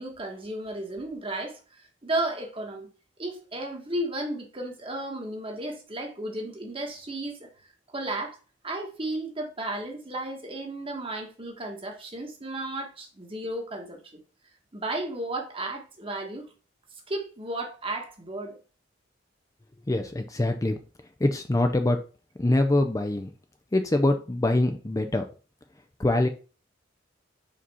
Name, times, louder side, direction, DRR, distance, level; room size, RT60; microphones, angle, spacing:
voice 1, 0.0-2.9 3.2-7.5 7.9-8.4 8.6-14.2 14.7-16.5 17.1-18.6, right 1 dB, 30° right, 1.4 m, -34 dB
voice 2, 19.9-20.8 21.2-22.0 22.4-23.3 23.7-25.2 26.0-26.3, left 1 dB, 20° left, 0.5 m, -24 dB
5.1 x 4.2 x 5.5 m
head